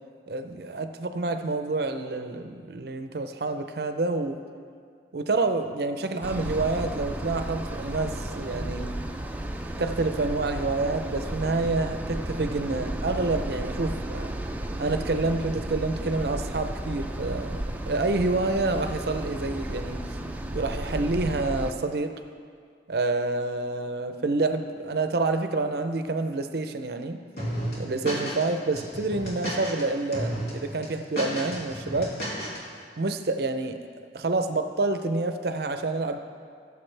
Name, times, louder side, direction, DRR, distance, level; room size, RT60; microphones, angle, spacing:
voice 1, 0.3-4.4 5.1-8.9 9.8-14.3 14.8-20.0 20.5-22.1 22.9-27.2 27.8-32.1 33.0-33.8 34.1-36.2, right 3 dB, 60° right, 7 dB, 0.5 m, -28 dB
sound 1, 6.2-21.7, right 1 dB, 10° right, 0.4 m, -33 dB
sound 2, 27.4-28.4 28.7-29.8 30.1-30.5 30.8-32.6, equal, 60° left, 2.4 m, -32 dB
17.5 x 6.9 x 3.3 m, 2.1 s
head